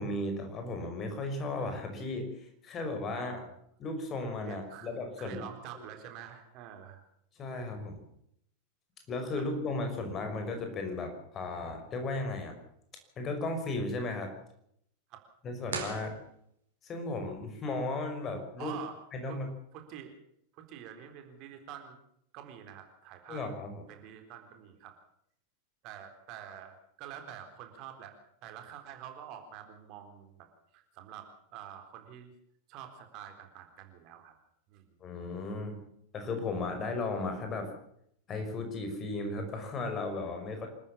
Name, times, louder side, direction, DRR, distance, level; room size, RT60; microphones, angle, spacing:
voice 1, 0.0-3.5 3.8-5.5 5.7-5.8 7.4-8.0 9.1-12.6 13.2-14.3 15.4-16.2 16.8-18.7 19.1-19.5 23.3-23.8 35.0-35.8 36.1-37.7 38.3-40.7, left 2 dB, 25° left, 5 dB, 5.6 m, -35 dB
voice 2, 3.1-3.5 4.5-4.9 5.2-7.0 9.3-9.4 15.1-15.2 18.6-19.0 19.3-19.4 19.7-20.1 20.5-22.0 22.3-23.4 23.9-24.9 25.8-28.2 28.4-30.5 30.7-32.3 32.7-34.3 34.7-35.0, right 9 dB, 40° right, 6 dB, 3.9 m, -47 dB
sound 1, 15.7-16.9, right 5 dB, 65° right, 4.6 m, -40 dB
27.0 x 14.0 x 7.3 m, 0.70 s
figure-of-eight pair, 90°, 0 cm